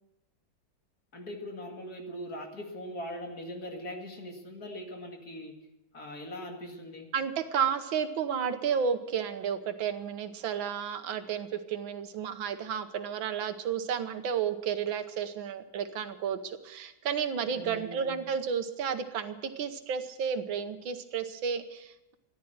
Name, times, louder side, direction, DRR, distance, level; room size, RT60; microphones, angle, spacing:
voice 1, 1.1-5.6 5.9-7.1 17.5-18.1, equal, 50° left, 2 dB, 2.6 m, -41 dB
voice 2, 7.1-22.1, right 7 dB, 75° right, 9 dB, 1.8 m, -32 dB
14.5 x 11.0 x 7.8 m, 0.91 s
omnidirectional pair, 2.1 m